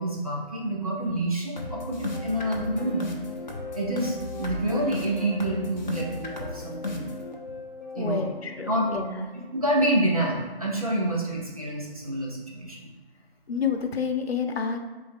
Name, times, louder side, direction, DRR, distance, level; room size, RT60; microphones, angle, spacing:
voice 1, 0.0-3.1 3.7-7.1 8.0-8.3 8.7-9.0 9.5-12.9, right 1 dB, 35° right, -3 dB, 0.7 m, -28 dB
sound 1, 1.5-9.5, left 2 dB, 45° left, 0.6 m, -35 dB
voice 2, 8.0-9.3 13.5-14.8, left 6 dB, 85° left, 6 dB, 0.7 m, -29 dB
3.4 x 3.2 x 3.5 m, 1.3 s
figure-of-eight pair, 175°, 30 cm